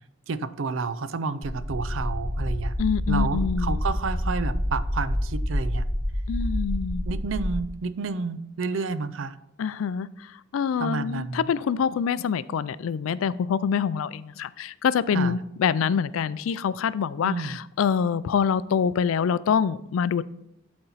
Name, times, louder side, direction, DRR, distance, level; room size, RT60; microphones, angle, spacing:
voice 1, 0.3-2.7 3.1-5.8 7.0-9.4 10.8-11.5 15.1-15.4 17.2-17.6, right 4 dB, 70° right, 0.5 m, -30 dB
sound 1, 1.4-7.6, equal, 10° left, 0.5 m, -27 dB
voice 2, 2.8-3.8 6.3-7.0 9.6-20.2, left 7 dB, 80° left, 0.3 m, -25 dB
11.5 x 4.3 x 4.1 m
head